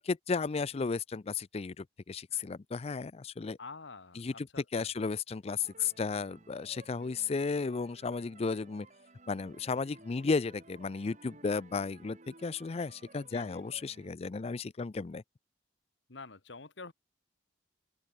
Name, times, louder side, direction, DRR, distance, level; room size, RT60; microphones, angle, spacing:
voice 1, 0.0-3.6 4.2-4.5 4.7-8.9 9.3-15.2, left 4 dB, 35° left, 0.4 m, -34 dB
voice 2, 3.6-4.9 13.3-13.6 16.1-16.9, left 4 dB, 75° left, 1.6 m, -47 dB
sound 1, 5.6-14.1, right 2 dB, 40° right, 2.6 m, -57 dB
open air
head